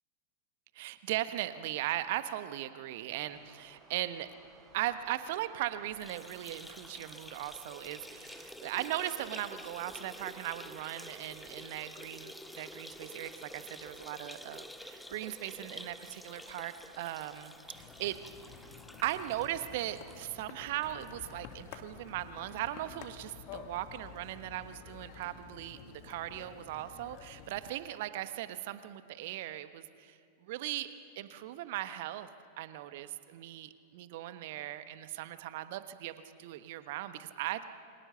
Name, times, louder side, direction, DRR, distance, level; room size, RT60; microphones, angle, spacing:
voice 1, 0.7-4.3 4.7-18.2 19.0-30.9 31.1-32.3 32.6-37.6, right 14 dB, 50° right, 11 dB, 1.2 m, -38 dB
sound 1, 3.1-20.4, right 5 dB, 30° right, 7.9 m, -61 dB
sound 2, 5.9-21.3 21.7-21.8 22.1-22.2 23.2-23.3, left 1 dB, 5° left, 1.3 m, -49 dB
sound 3, 17.7-27.7, left 8 dB, 45° left, 2.3 m, -51 dB
29.0 x 25.0 x 6.9 m, 2.4 s
figure-of-eight pair, 90°, 0 cm